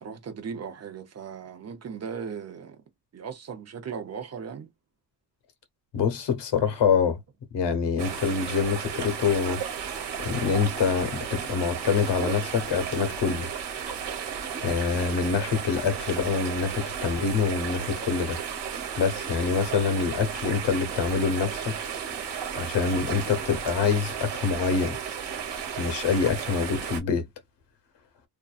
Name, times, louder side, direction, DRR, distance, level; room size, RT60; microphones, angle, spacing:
voice 1, 0.0-2.8 3.1-4.7, right 6 dB, 40° right, 0.6 m, -37 dB
voice 2, 5.9-7.2 7.5-9.6 10.2-13.5 14.6-18.4 18.7-21.8 22.6-25.0 25.8-27.3, left 6 dB, 85° left, 0.9 m, -26 dB
sound 1, 8.0-27.0, right 7 dB, 80° right, 1.2 m, -34 dB
2.6 x 2.2 x 2.3 m
wide cardioid pair, 160°, 41 cm